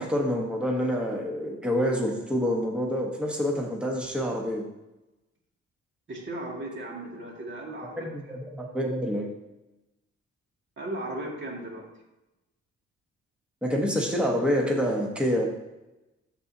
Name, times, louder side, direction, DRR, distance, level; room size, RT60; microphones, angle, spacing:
voice 1, 0.0-4.6 8.0-9.3 13.6-15.5, equal, 5° right, -1 dB, 1.2 m, -27 dB
voice 2, 6.1-8.4 10.8-11.9, right 1 dB, 40° right, -1 dB, 2.1 m, -36 dB
12.5 x 4.3 x 2.8 m, 0.99 s
cardioid pair, 95°, 29 cm